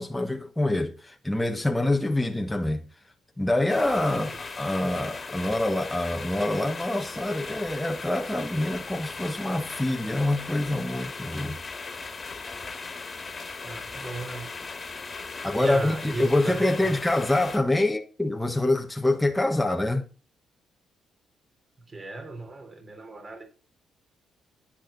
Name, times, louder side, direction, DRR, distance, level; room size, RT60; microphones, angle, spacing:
voice 1, 0.0-2.8 3.4-11.6 15.4-20.1, left 1 dB, 5° left, 1.3 m, -26 dB
sound 1, 3.7-17.6, left 4 dB, 30° left, 2.1 m, -38 dB
voice 2, 4.1-4.4 13.6-14.5 15.5-17.0 21.9-23.5, right 3 dB, 30° right, 3.5 m, -37 dB
9.7 x 8.8 x 3.9 m
cardioid pair, 90°, 0 cm